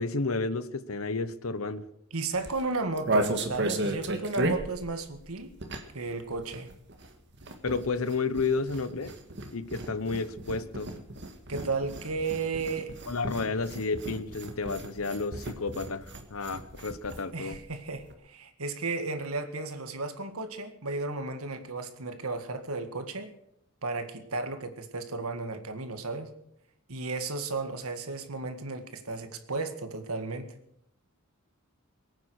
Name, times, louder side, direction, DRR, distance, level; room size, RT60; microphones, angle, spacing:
voice 1, 0.0-1.9 7.6-9.1 9.5-10.9 13.1-17.6, left 4 dB, 80° left, 14 dB, 1.0 m, -31 dB
voice 2, 2.1-5.5 5.9-6.7 11.5-12.9 17.3-23.3 23.8-26.3 26.9-30.5, right 3 dB, 90° right, 8 dB, 1.8 m, -34 dB
sound 1, 2.3-6.1 6.3-17.2 17.5-17.6 17.8-18.1, right 1 dB, 55° right, 1.8 m, -35 dB
22.5 x 9.2 x 6.5 m, 0.76 s
head